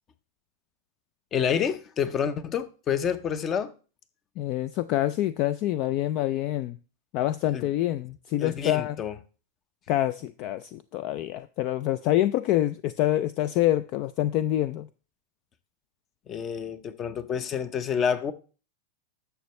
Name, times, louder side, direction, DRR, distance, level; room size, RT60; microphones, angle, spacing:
voice 1, 1.3-3.7 7.5-7.6 8.4-9.1 16.3-18.3, left 7 dB, 25° left, 0.8 m, -28 dB
voice 2, 4.4-6.8 7.1-9.0 9.9-14.9, left 13 dB, 45° left, 0.4 m, -26 dB
11.0 x 7.0 x 3.2 m
supercardioid pair, 145°, 0 cm